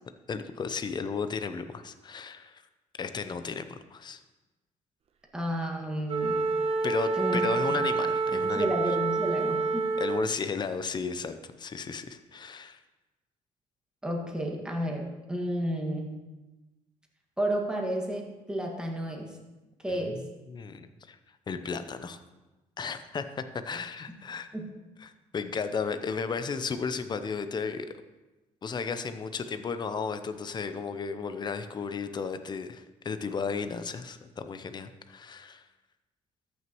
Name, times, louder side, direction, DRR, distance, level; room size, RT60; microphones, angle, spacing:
voice 1, 0.3-2.6 3.0-4.2 6.8-8.7 10.0-12.8 19.9-20.2 20.5-21.2 21.5-22.2 22.8-24.5 25.0-27.9 28.6-35.6, left 5 dB, 35° left, 10 dB, 0.6 m, -34 dB
voice 2, 5.3-6.4 7.1-7.5 8.3-9.9 14.0-16.2 17.4-19.3 19.8-20.2 24.5-24.7, right 1 dB, 5° right, 0 dB, 1.8 m, -31 dB
Wind instrument woodwind instrument, 6.1-10.4, right 4 dB, 50° right, 0.9 m, -28 dB
13.5 x 6.3 x 3.0 m, 1.1 s
cardioid pair, 85°, 13 cm